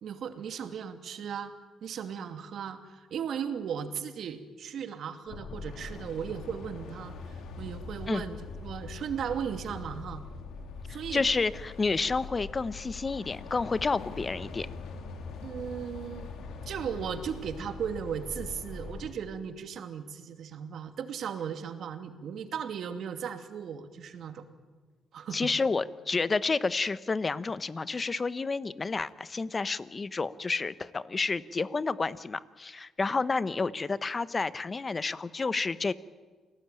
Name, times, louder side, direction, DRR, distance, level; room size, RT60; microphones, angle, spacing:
voice 1, 0.0-1.5 1.8-10.2 10.9-11.3 15.4-16.3 16.7-24.4 25.1-25.5, right 7 dB, 65° right, 7 dB, 2.5 m, -36 dB
sound 1, 5.3-19.1, left 4 dB, 80° left, 3.3 m, -42 dB
voice 2, 11.1-14.7 25.3-35.9, left 4 dB, 30° left, 15 dB, 1.1 m, -30 dB
28.5 x 18.5 x 9.2 m, 1.4 s
cardioid pair, 90°, 0 cm